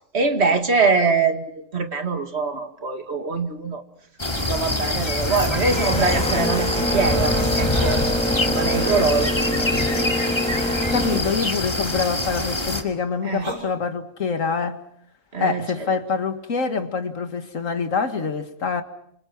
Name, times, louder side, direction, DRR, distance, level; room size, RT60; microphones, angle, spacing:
voice 1, 0.1-3.8 4.4-8.0 8.5-9.7 10.7-10.8 13.2-13.4 15.3-15.7, right 4 dB, 55° right, 2.3 m, -23 dB
countryside birds insects, 4.2-12.8, left 2 dB, 20° left, 2.3 m, -25 dB
Boat Water vehicle, 5.0-11.2, equal, 5° left, 2.0 m, -26 dB
sound 1, 7.0-7.2 7.7-8.1 8.7-9.1 9.7-10.2 10.9-11.4 13.3-13.5, right 1 dB, 85° right, 6.9 m, -32 dB
voice 2, 10.9-14.8 15.4-18.8, left 5 dB, 80° left, 2.2 m, -25 dB
28.0 x 26.5 x 6.0 m
omnidirectional pair, 1.3 m